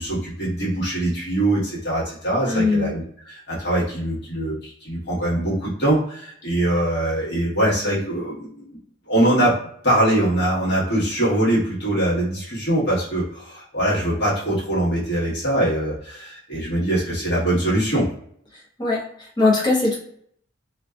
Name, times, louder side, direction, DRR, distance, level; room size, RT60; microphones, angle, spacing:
voice 1, 0.0-8.5 9.1-9.5 9.8-18.1, right 1 dB, 55° left, -7 dB, 1.2 m, -22 dB
voice 2, 2.5-2.9 18.5-20.0, left 3 dB, 20° left, -4 dB, 0.6 m, -21 dB
2.5 x 2.2 x 2.3 m, 0.65 s
head